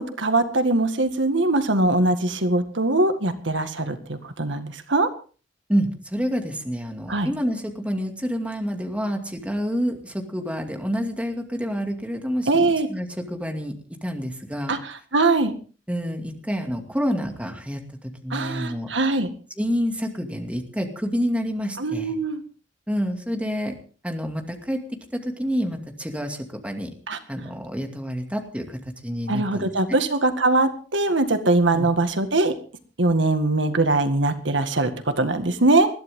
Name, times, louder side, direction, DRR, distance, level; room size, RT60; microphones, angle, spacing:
voice 1, 0.0-5.1 7.1-7.3 12.5-12.9 14.7-14.8 15.1-15.5 18.3-19.3 21.8-22.4 27.1-27.2 29.3-32.5 33.0-35.9, right 2 dB, 75° right, 8 dB, 1.9 m, -22 dB
voice 2, 5.7-13.7 14.0-14.7 15.9-18.9 19.6-22.1 22.9-23.7 24.0-24.8 25.1-26.9 27.3-28.8 29.0-30.0 31.7-31.9, equal, 5° right, 4 dB, 2.4 m, -28 dB
20.5 x 14.5 x 3.8 m, 0.38 s
head